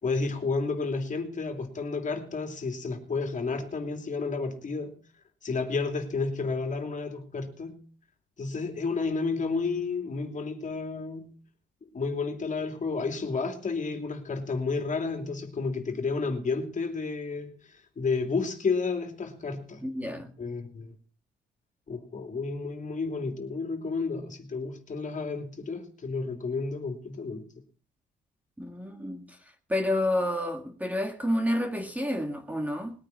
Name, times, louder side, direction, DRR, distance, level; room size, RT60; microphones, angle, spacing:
voice 1, 0.0-5.0 5.4-7.8 8.4-11.4 11.8-19.8 20.4-20.9 21.9-27.5, left 4 dB, 40° left, 3.0 m, -31 dB
voice 2, 19.8-20.3 28.6-29.2 29.7-32.9, left 1 dB, 10° right, 1.8 m, -29 dB
20.5 x 9.5 x 4.1 m
cardioid pair, 90°, 20 cm